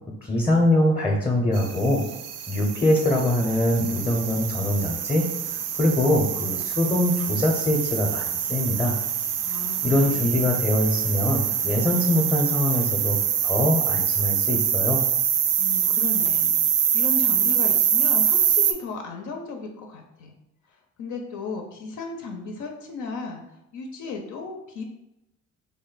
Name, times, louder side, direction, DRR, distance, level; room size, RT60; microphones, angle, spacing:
voice 1, 0.2-2.0 2.5-8.9 9.8-15.0, left 1 dB, 15° left, 0 dB, 0.6 m, -23 dB
sound 1, 1.5-18.7, right 9 dB, 55° right, 0.4 m, -25 dB
voice 2, 9.4-10.6 15.6-20.3 20.7-23.4 23.7-24.8, left 4 dB, 75° left, 2 dB, 0.6 m, -35 dB
3.5 x 2.1 x 3.9 m, 0.88 s
cardioid pair, 90°, 30 cm